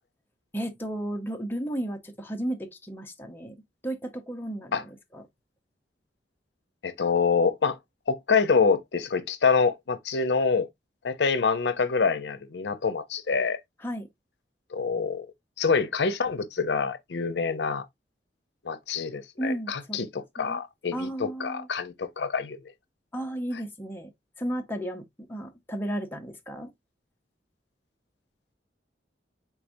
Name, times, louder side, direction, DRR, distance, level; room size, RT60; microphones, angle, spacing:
voice 1, 0.5-3.6 3.8-5.2 13.8-14.1 19.4-20.0 20.4-20.6 20.9-21.7 23.1-24.1 24.4-26.7, right 1 dB, 10° left, 0.6 m, -34 dB
voice 2, 6.8-7.8 8.1-10.7 11.0-13.6 14.7-15.3 15.6-17.8 18.6-22.6, left 5 dB, 70° left, 0.6 m, -26 dB
4.7 x 3.5 x 2.6 m
head